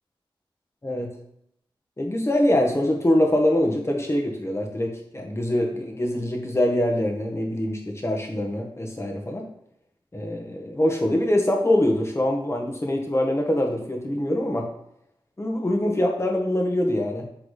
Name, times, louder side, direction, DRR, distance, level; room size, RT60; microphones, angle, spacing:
voice 1, 0.8-1.2 2.0-9.5 10.1-14.7 15.4-17.2, left 1 dB, 30° left, 1 dB, 1.5 m, -24 dB
8.2 x 3.7 x 4.0 m, 0.75 s
wide cardioid pair, 60°, 9 cm